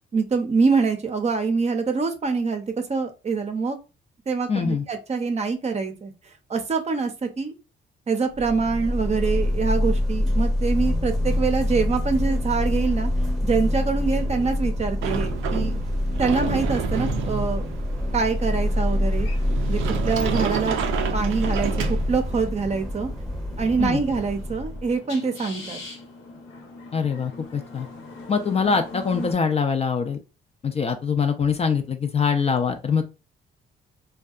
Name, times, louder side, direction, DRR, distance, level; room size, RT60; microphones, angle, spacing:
voice 1, 0.1-3.8 4.3-6.1 6.5-7.5 8.1-13.1 13.4-15.8 16.2-17.7 18.1-19.3 19.7-20.8 21.1-21.7 22.1-23.1 23.6-25.8, right 4 dB, 35° right, 6 dB, 0.6 m, -25 dB
voice 2, 4.5-4.8 23.8-24.0 26.9-27.9 28.3-30.2 30.6-33.0, left 6 dB, 30° left, 6 dB, 0.4 m, -23 dB
sound 1, 8.3-24.9, left 1 dB, ahead, 0.8 m, -26 dB
Sliding door, 15.0-22.5, right 8 dB, 90° right, 0.4 m, -31 dB
sound 2, 18.6-29.3, left 3 dB, 75° left, 0.8 m, -42 dB
2.6 x 2.2 x 2.4 m, 0.29 s
cardioid pair, 90°, 20 cm